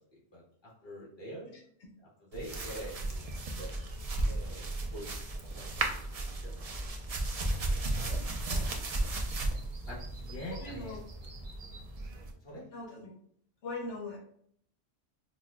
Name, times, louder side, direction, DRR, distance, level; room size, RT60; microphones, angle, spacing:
voice 1, 0.8-1.7 2.3-3.2 3.6-3.7 4.2-6.1 6.4-6.5 7.9-8.5 9.8-11.0 12.4-12.7, equal, 20° left, -6 dB, 1.4 m, -45 dB
voice 2, 1.5-1.9 8.4-8.6 10.5-11.0 12.7-13.1 13.6-14.2, left 3 dB, 75° left, -1 dB, 1.1 m, -41 dB
sound 1, 2.3-12.3, right 2 dB, 55° right, 0.4 m, -35 dB
5.8 x 2.0 x 2.3 m, 0.63 s
omnidirectional pair, 1.2 m